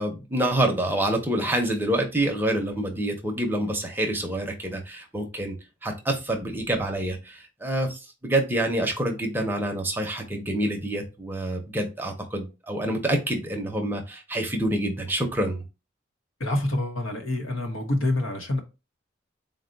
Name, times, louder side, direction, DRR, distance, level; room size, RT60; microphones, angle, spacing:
voice 1, 0.0-5.6 5.8-15.6, right 1 dB, 10° right, 0.6 m, -27 dB
voice 2, 16.4-18.6, left 1 dB, 85° left, 0.9 m, -26 dB
4.0 x 2.2 x 3.8 m
head